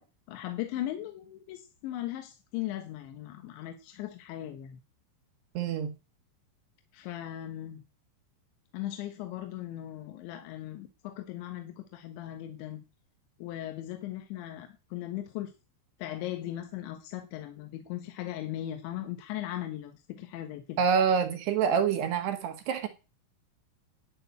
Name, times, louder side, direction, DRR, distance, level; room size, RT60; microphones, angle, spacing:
voice 1, 0.3-4.8 6.9-7.8 8.7-12.8 13.4-15.5 16.0-20.8, left 13 dB, 75° left, 3.5 m, -38 dB
voice 2, 5.5-5.9 20.8-22.9, right 6 dB, 70° right, 3.1 m, -26 dB
11.5 x 6.5 x 9.4 m
omnidirectional pair, 5.5 m